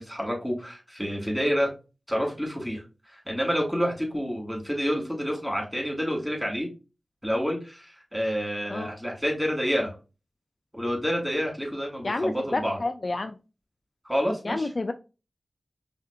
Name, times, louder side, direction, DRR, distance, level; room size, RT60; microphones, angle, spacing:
voice 1, 0.0-1.7 2.1-6.7 7.2-10.0 10.7-12.8 14.0-14.7, equal, ahead, -1 dB, 2.2 m, -28 dB
voice 2, 12.0-13.4 14.4-14.9, left 2 dB, 50° left, 7 dB, 0.3 m, -29 dB
5.5 x 2.5 x 2.4 m, 0.30 s
cardioid pair, 50°, 0 cm